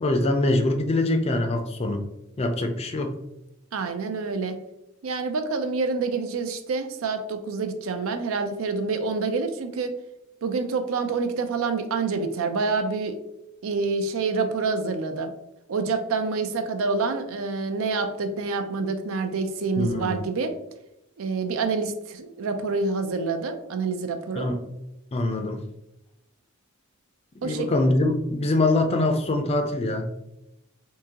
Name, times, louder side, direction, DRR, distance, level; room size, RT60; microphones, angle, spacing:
voice 1, 0.0-2.0 2.4-3.1 19.8-20.2 24.4-24.6 25.1-25.6 27.4-30.1, left 2 dB, 30° left, 6 dB, 0.4 m, -23 dB
voice 2, 3.7-4.5 5.0-9.9 10.4-13.1 13.6-15.3 15.7-20.5 21.2-24.5 27.4-27.7, right 4 dB, 85° right, 7 dB, 0.4 m, -27 dB
3.6 x 2.7 x 2.8 m, 0.88 s
head